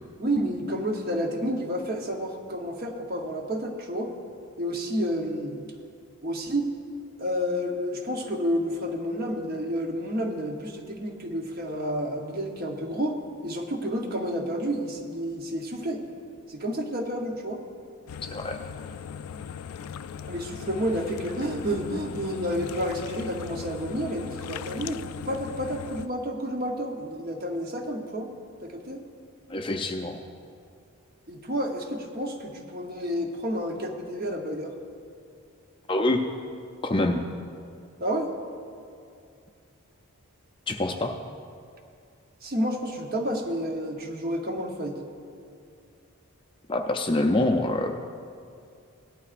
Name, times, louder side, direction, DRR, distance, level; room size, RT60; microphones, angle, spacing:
voice 1, 0.2-4.1 4.6-5.6 6.2-6.7 7.2-16.0 16.5-17.6 20.3-28.3 28.6-29.0 31.3-34.8 38.0-38.3 42.4-45.0, equal, 40° right, 3 dB, 1.0 m, -30 dB
sound 1, 18.1-26.1, left 7 dB, 85° left, 0.4 m, -38 dB
voice 2, 18.3-18.6 29.5-30.2 35.9-36.2 36.8-37.2 40.7-41.1 46.7-47.9, left 2 dB, 20° left, 4 dB, 0.5 m, -25 dB
17.0 x 11.5 x 2.5 m, 2.3 s
head